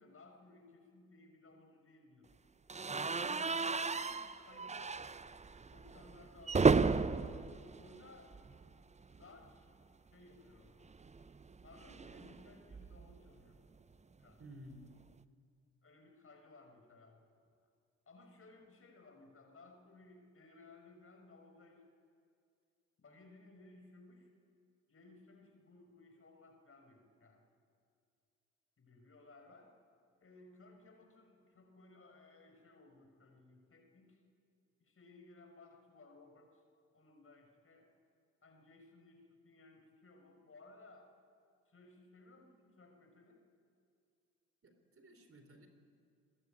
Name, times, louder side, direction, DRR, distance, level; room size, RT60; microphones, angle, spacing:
voice 1, 0.0-2.3 3.0-5.0 5.7-7.3 7.8-8.4 9.1-9.6 10.1-10.7 11.6-13.6 14.2-14.4 15.8-17.2 18.1-21.8 23.0-24.3 24.9-27.4 28.8-29.7 30.2-34.2 34.8-36.6 36.9-37.9 38.4-41.1 41.7-43.4, left 3 dB, 35° left, 4 dB, 5.8 m, -60 dB
sound 1, 2.7-8.7 9.0-9.2 9.5-9.6 10.8-13.2, right 4 dB, 20° right, 0.9 m, -34 dB
voice 2, 14.4-14.9 44.6-45.7, equal, 35° right, 6 dB, 4.1 m, -54 dB
24.5 x 20.0 x 9.1 m, 2.4 s
figure-of-eight pair, 45°, 38 cm